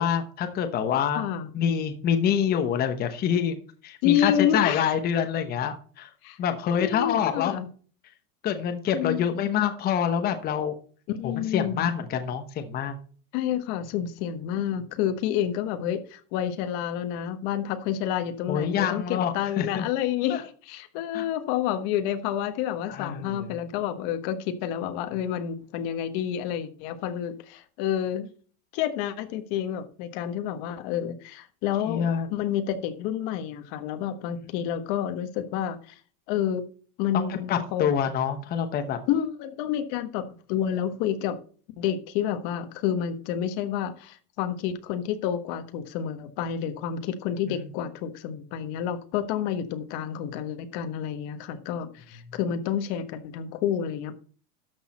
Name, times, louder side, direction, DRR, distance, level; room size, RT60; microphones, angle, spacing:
voice 1, 0.0-1.2 1.5-3.6 3.8-6.1 6.4-7.6 8.4-10.7 11.2-13.0 18.5-19.9 20.3-20.4 21.1-21.3 22.9-23.5 31.9-32.3 34.4-34.5 37.1-39.0 47.5-47.7, left 8 dB, 20° left, 7 dB, 0.9 m, -26 dB
voice 2, 1.2-1.5 4.0-4.9 6.2-6.4 6.8-7.7 8.9-9.3 11.1-11.8 13.3-28.3 28.7-35.9 36.3-36.7 37.0-37.9 39.1-41.4 41.8-54.2, left 10 dB, 40° left, 9 dB, 1.4 m, -29 dB
12.5 x 6.3 x 4.2 m, 0.42 s
supercardioid pair, 160°, 46 cm